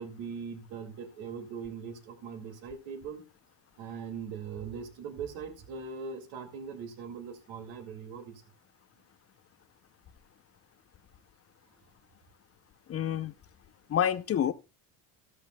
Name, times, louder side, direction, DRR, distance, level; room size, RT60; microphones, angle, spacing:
voice 1, 0.0-3.3 3.8-8.4, right 6 dB, 65° right, 2.4 m, -40 dB
voice 2, 12.9-13.3 13.9-14.5, left 9 dB, 30° left, 0.6 m, -28 dB
13.0 x 13.0 x 2.2 m
supercardioid pair, 100°, 49 cm